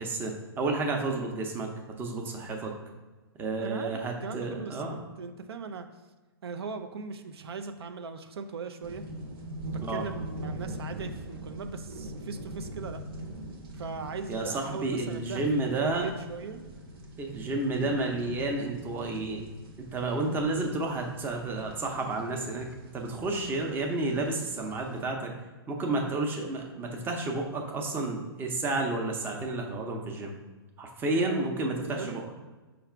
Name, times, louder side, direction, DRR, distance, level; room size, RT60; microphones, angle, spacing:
voice 1, 0.0-1.7 2.0-2.7 3.4-5.0 9.8-10.0 14.3-16.1 17.2-19.5 19.8-22.7 22.9-25.3 25.7-30.3 30.8-32.3, right 2 dB, 15° right, 1 dB, 0.6 m, -31 dB
voice 2, 3.6-4.9 5.2-5.9 6.4-9.0 9.6-13.0 13.8-16.6 17.8-18.0 20.2-20.4 31.1-31.5 31.8-32.2, right 5 dB, 80° right, 7 dB, 0.4 m, -39 dB
sound 1, 8.8-25.0, right 1 dB, 65° right, 1.0 m, -43 dB
4.8 x 2.4 x 4.4 m, 1.2 s
hypercardioid pair, 135°, 13 cm